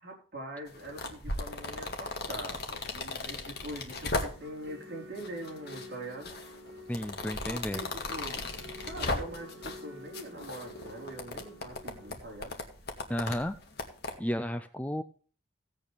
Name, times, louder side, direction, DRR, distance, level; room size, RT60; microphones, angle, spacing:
voice 1, 0.0-6.4 7.4-8.4 8.8-12.5, right 1 dB, 45° right, -1 dB, 4.3 m, -43 dB
sound 1, 0.7-4.7 5.2-5.9 6.2-9.8 10.1-14.1, left 2 dB, 50° left, 2.1 m, -37 dB
sound 2, 4.2-12.1, left 1 dB, 65° right, 6.2 m, -50 dB
voice 2, 6.9-7.9 13.1-13.6 14.2-15.0, equal, 5° left, 10 dB, 0.5 m, -33 dB
16.5 x 8.4 x 3.3 m, 0.40 s
head